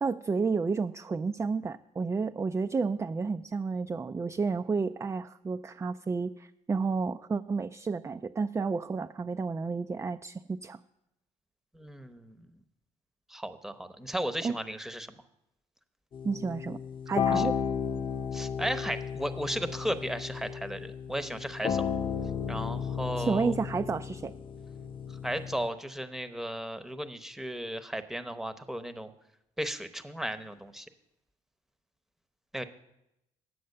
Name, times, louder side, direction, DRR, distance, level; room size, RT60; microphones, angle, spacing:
voice 1, 0.0-10.8 14.4-14.6 16.2-16.8 17.1-17.6 23.2-24.3, right 4 dB, 20° right, 8 dB, 0.4 m, -31 dB
voice 2, 11.7-12.5 13.3-15.1 17.3-17.4 18.3-21.9 22.5-23.5 25.2-29.1 29.6-30.9 32.5-32.6, equal, 5° right, 10 dB, 0.9 m, -35 dB
sound 1, 16.1-25.7, left 7 dB, 40° left, 0.4 m, -34 dB
9.4 x 7.6 x 6.6 m, 0.87 s
supercardioid pair, 80°, 14 cm